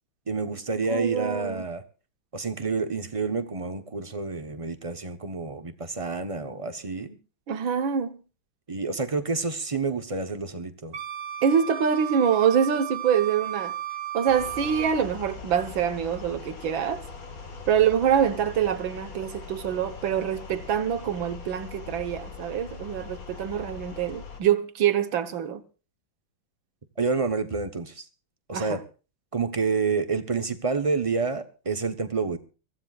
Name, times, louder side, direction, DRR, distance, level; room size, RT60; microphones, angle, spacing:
voice 1, 0.3-1.8 2.3-7.2 8.7-11.0 27.0-28.1 28.5-28.8 29.3-32.4, right 4 dB, 25° right, 0.8 m, -28 dB
voice 2, 0.9-1.6 7.5-8.2 11.4-13.7 14.1-17.0 17.7-25.6 28.5-28.8, right 8 dB, 70° right, 2.0 m, -25 dB
Wind instrument woodwind instrument, 10.9-15.0, right 11 dB, 45° right, 1.3 m, -34 dB
sound 1, 14.3-24.4, left 5 dB, 45° left, 2.4 m, -41 dB
23.5 x 15.5 x 2.5 m
omnidirectional pair, 2.2 m